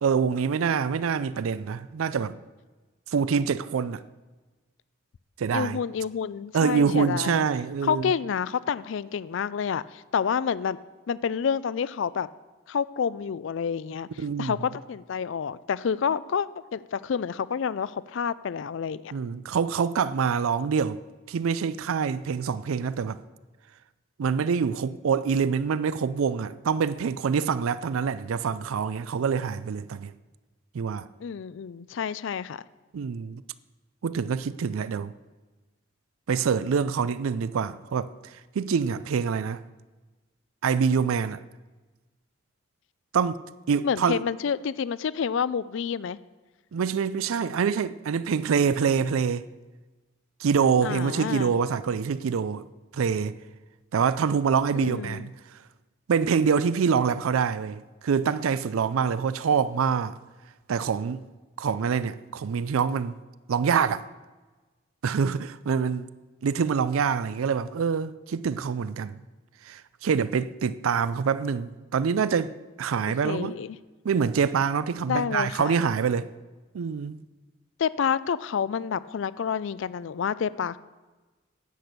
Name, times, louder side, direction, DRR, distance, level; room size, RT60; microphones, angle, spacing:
voice 1, 0.0-2.4 3.1-4.0 5.4-5.8 6.5-8.1 14.2-14.6 19.1-21.0 21.3-23.2 24.2-30.1 30.7-31.1 32.9-33.4 34.0-35.2 36.3-39.6 40.6-41.4 43.1-44.2 46.7-49.5 50.4-52.6 52.9-53.4 53.9-55.3 56.1-60.1 60.7-61.2 61.6-63.2 63.5-64.0 65.0-66.1 66.4-69.2 69.6-73.5 74.0-76.3 76.7-77.2, right 6 dB, 85° right, 0.4 m, -25 dB
voice 2, 5.5-7.5 7.8-10.8 11.1-12.3 12.7-19.1 31.2-32.6 43.8-46.2 50.8-51.5 54.7-55.3 73.2-73.8 75.1-75.8 77.8-80.8, left 7 dB, 65° left, 0.4 m, -29 dB
10.0 x 8.6 x 6.6 m
head